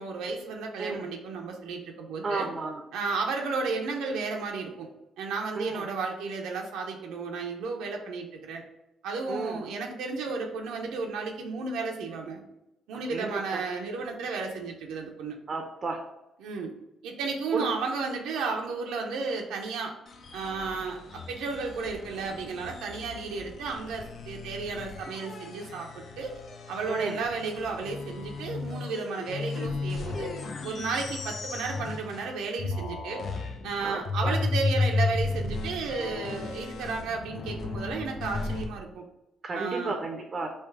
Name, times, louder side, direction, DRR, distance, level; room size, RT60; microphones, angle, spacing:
voice 1, 0.0-2.5 2.9-4.9 5.2-8.6 9.0-12.4 12.9-15.4 16.4-16.7 17.0-19.9 20.3-26.4 26.7-30.3 30.6-33.2 33.6-39.0 39.5-40.0, right 4 dB, 90° right, 1 dB, 0.6 m, -33 dB
voice 2, 2.2-2.8 5.6-5.8 9.3-9.6 12.9-13.6 15.5-16.0 17.5-17.7 26.9-27.2 33.8-34.3 39.4-40.5, right 3 dB, 35° right, 3 dB, 0.6 m, -33 dB
sound 1, 20.1-32.3 32.6-38.6, left 3 dB, 55° left, 0.5 m, -34 dB
3.4 x 2.8 x 4.6 m, 0.89 s
cardioid pair, 90°, 0 cm